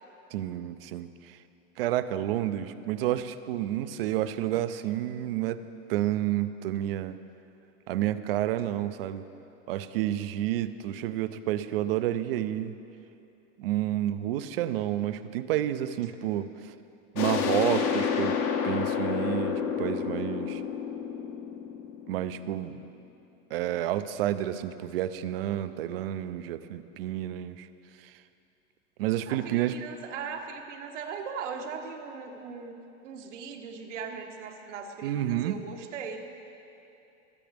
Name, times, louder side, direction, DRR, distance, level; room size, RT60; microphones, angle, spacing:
voice 1, 0.3-1.4 1.8-5.6 5.9-7.2 7.9-9.3 9.7-12.8 13.6-16.7 17.1-18.4 18.6-20.6 22.1-22.7 23.5-27.7 29.0-29.8 35.0-35.5, right 12 dB, 50° right, 13 dB, 0.6 m, -30 dB
sound 1, 17.2-22.6, left 7 dB, 25° left, 0.7 m, -29 dB
voice 2, 29.3-36.2, right 6 dB, 75° right, 3 dB, 1.4 m, -39 dB
22.0 x 9.1 x 3.4 m, 2.7 s
supercardioid pair, 165°, 37 cm